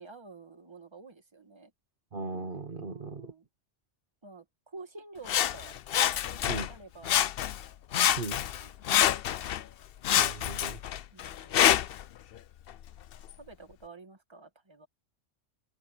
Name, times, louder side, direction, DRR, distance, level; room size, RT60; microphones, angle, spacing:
voice 1, 0.0-1.7 2.8-3.5 4.2-7.2 8.6-9.3 11.1-11.6 13.4-14.9, right 3 dB, 20° right, 1.7 m, -50 dB
voice 2, 2.1-3.3 6.5-6.7 8.2-8.4 10.2-10.8, right 3 dB, 45° right, 1.3 m, -37 dB
Sawing, 5.3-6.7 7.0-7.7 7.9-9.6 10.0-12.0 12.7-12.8, left 11 dB, 60° left, 0.7 m, -26 dB
open air
omnidirectional pair, 1.3 m